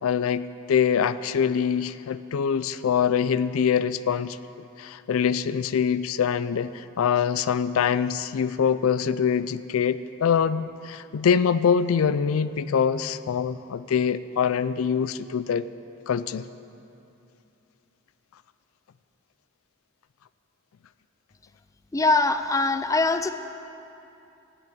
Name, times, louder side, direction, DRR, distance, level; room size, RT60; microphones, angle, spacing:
voice 1, 0.0-4.4 4.8-15.6 16.1-16.5, left 7 dB, 80° left, 15 dB, 0.4 m, -24 dB
voice 2, 21.9-23.3, left 3 dB, 15° left, 10 dB, 0.4 m, -22 dB
16.0 x 6.0 x 9.0 m, 2.8 s
head